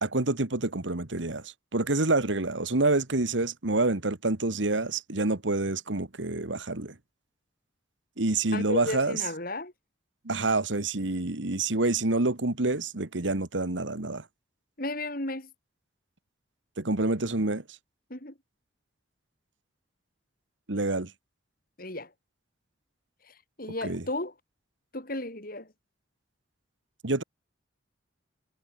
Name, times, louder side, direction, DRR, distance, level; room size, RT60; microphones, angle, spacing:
voice 1, 0.0-6.9 8.2-9.2 10.3-14.2 16.8-17.6 20.7-21.1 23.8-24.0 27.0-27.2, right 2 dB, 75° right, 1.8 m, -27 dB
voice 2, 8.5-9.7 14.8-15.5 18.1-18.3 21.8-22.1 23.3-24.3 24.9-25.7, left 2 dB, 50° left, 7.5 m, -34 dB
head